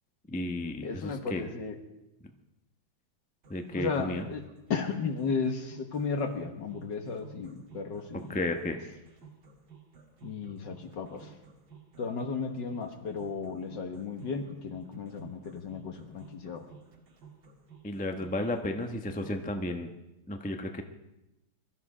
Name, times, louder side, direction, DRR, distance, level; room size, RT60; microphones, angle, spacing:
voice 1, 0.3-1.5 3.5-4.2 8.3-8.8 17.8-19.9 20.3-20.8, left 1 dB, 10° left, 5 dB, 0.5 m, -33 dB
voice 2, 0.8-1.8 3.8-4.4 4.7-8.4 10.2-11.3 12.0-16.7, left 5 dB, 60° left, 5 dB, 2.0 m, -34 dB
sound 1, 3.4-19.4, right 6 dB, 70° right, 2.6 m, -54 dB
22.5 x 13.0 x 5.0 m, 0.92 s
omnidirectional pair, 2.2 m